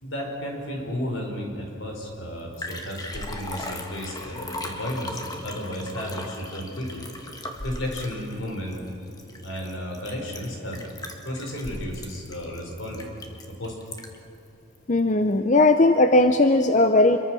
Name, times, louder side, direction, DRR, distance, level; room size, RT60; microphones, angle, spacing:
voice 1, 0.0-7.1 7.6-8.8 9.4-10.8 11.2-13.1 13.5-13.8, equal, 70° left, 1 dB, 4.8 m, -33 dB
Liquid, 2.1-2.2 2.4-14.3 14.7-14.8, left 1 dB, 20° left, 1.6 m, -38 dB
voice 2, 14.9-17.2, left 2 dB, 35° left, 7 dB, 0.7 m, -18 dB
26.5 x 22.5 x 6.3 m, 2.9 s
head